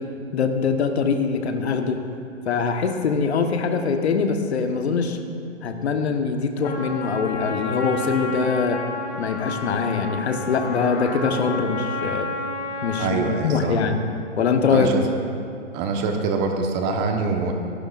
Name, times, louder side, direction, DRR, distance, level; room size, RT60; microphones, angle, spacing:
voice 1, 0.3-2.0 2.5-5.2 5.6-8.8 9.2-12.3 12.8-13.2 13.4-14.0 14.4-14.9, left 5 dB, 60° left, 5 dB, 1.3 m, -23 dB
Trumpet, 6.6-13.6, left 3 dB, 30° left, 2.2 m, -31 dB
voice 2, 13.0-13.8 14.7-15.0 15.7-17.5, right 4 dB, 25° right, 4 dB, 1.2 m, -24 dB
26.0 x 11.5 x 2.5 m, 2.6 s
figure-of-eight pair, 125°, 37 cm